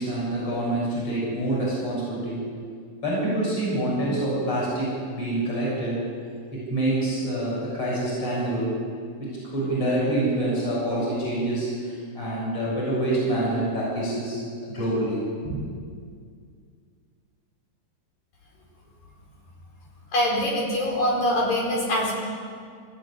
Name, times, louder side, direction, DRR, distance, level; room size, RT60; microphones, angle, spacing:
voice 1, 0.0-2.5 3.0-6.1 6.5-8.7 9.2-15.7, right 1 dB, 30° left, -5 dB, 7.4 m, -26 dB
voice 2, 20.1-22.1, left 1 dB, 85° left, -2 dB, 6.6 m, -23 dB
21.0 x 14.0 x 9.9 m, 2.1 s
omnidirectional pair, 3.9 m